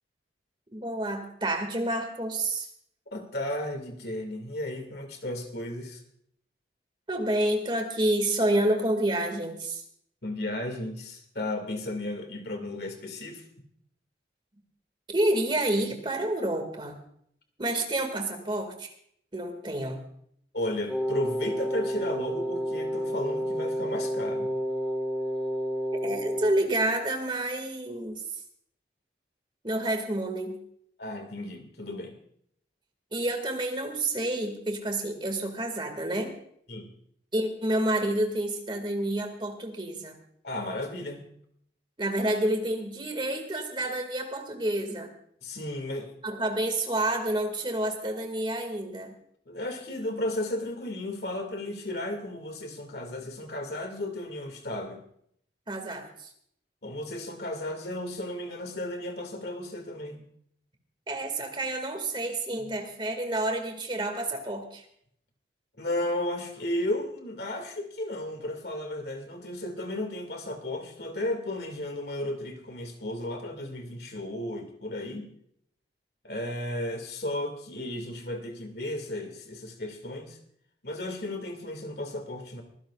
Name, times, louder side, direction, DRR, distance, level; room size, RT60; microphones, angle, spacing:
voice 1, 0.7-2.7 7.1-9.8 15.1-16.9 17.6-18.9 19.3-20.0 26.0-28.2 29.6-30.6 33.1-36.3 37.3-40.2 42.0-45.1 46.2-49.1 55.7-56.3 61.1-64.8, right 1 dB, 30° right, 5 dB, 2.2 m, -29 dB
voice 2, 3.1-6.0 10.2-13.4 20.5-24.6 31.0-32.2 36.7-36.9 40.4-41.2 45.4-46.1 49.5-55.0 56.8-60.2 62.6-62.7 65.8-75.3 76.2-80.4 80.8-82.6, left 1 dB, 65° left, 5 dB, 2.3 m, -34 dB
Wind instrument woodwind instrument, 20.9-26.6, equal, ahead, 1.7 m, -30 dB
24.0 x 15.5 x 2.5 m, 0.68 s
head